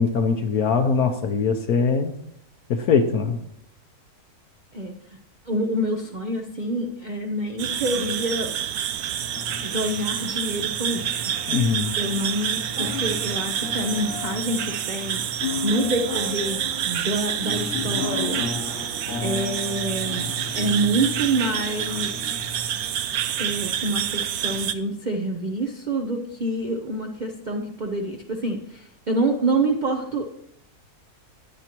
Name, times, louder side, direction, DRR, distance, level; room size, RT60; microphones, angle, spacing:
voice 1, 0.0-2.1 2.7-3.4 11.5-11.9, left 5 dB, 75° left, 3 dB, 1.3 m, -21 dB
voice 2, 4.7-5.2 5.5-8.5 9.6-11.2 12.0-20.3 20.5-22.1 23.4-30.3, right 2 dB, 40° right, 2 dB, 0.8 m, -27 dB
sound 1, 7.6-24.7, right 10 dB, 80° right, 1.1 m, -28 dB
sound 2, 9.1-23.8, left 5 dB, 50° left, 1.2 m, -35 dB
15.5 x 9.6 x 3.0 m, 0.73 s
omnidirectional pair, 1.6 m